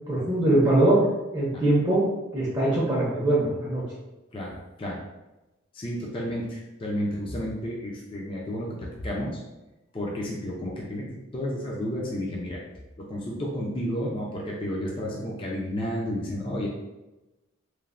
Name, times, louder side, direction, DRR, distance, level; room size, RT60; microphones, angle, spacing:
voice 1, 0.1-1.0 1.3-2.1 2.3-3.8, right 1 dB, 20° right, -7 dB, 0.5 m, -22 dB
voice 2, 4.3-5.0 5.7-8.8 9.0-9.4 9.9-12.6 13.1-16.7, equal, 25° left, -3 dB, 0.4 m, -31 dB
3.1 x 2.1 x 2.4 m, 1.0 s
head